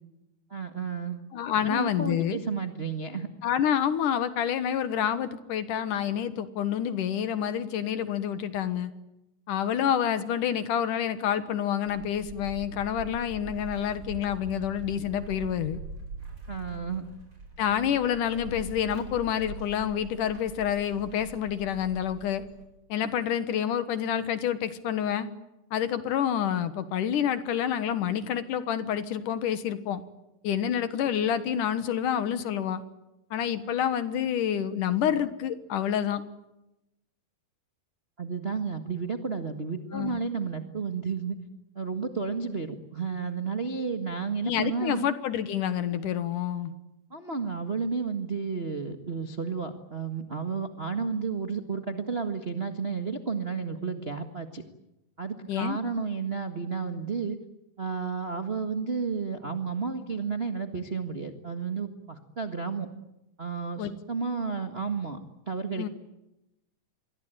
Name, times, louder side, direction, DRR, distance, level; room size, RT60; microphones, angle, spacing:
voice 1, 0.5-1.2 1.6-3.3 16.5-17.1 38.2-41.4 41.7-45.1 47.1-54.6 55.2-57.4 57.8-62.9 63.4-65.2 65.5-65.9, right 5 dB, 75° right, 6 dB, 0.5 m, -32 dB
voice 2, 1.3-2.4 3.4-8.9 9.5-15.8 17.6-22.4 22.9-25.3 25.7-30.0 30.4-32.8 33.3-36.2 39.9-40.2 44.4-46.7 55.5-55.8 63.8-63.9 65.8-65.9, left 9 dB, 65° left, 12 dB, 2.7 m, -28 dB
sound 1, 11.9-22.7, right 3 dB, 35° right, 7.6 m, -43 dB
27.5 x 23.0 x 9.2 m, 0.93 s
omnidirectional pair, 4.3 m